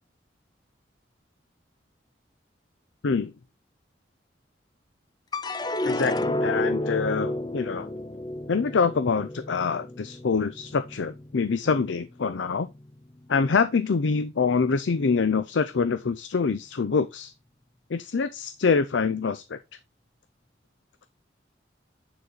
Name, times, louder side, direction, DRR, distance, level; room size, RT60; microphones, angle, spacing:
sound 1, 5.3-11.8 12.2-12.9, left 1 dB, 20° left, 0.4 m, -31 dB
voice 1, 5.8-7.9 8.5-12.7 13.3-17.3 17.9-19.6, left 5 dB, 80° left, 0.5 m, -25 dB
9.5 x 4.1 x 3.9 m
head